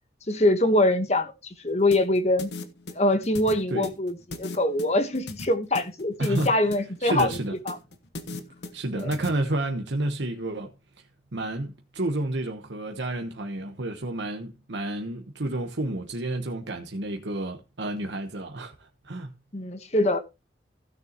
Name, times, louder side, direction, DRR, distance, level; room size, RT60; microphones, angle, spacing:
voice 1, 0.3-2.5 2.9-7.3 7.7-7.8 9.0-9.1 19.5-20.2, left 1 dB, 35° left, 1.3 m, -24 dB
sound 1, 1.9-9.3, left 2 dB, 75° left, 1.3 m, -38 dB
voice 2, 6.2-6.5 7.0-7.5 8.7-10.7 11.3-19.3, right 1 dB, 85° right, 1.2 m, -30 dB
16.5 x 6.8 x 3.0 m
head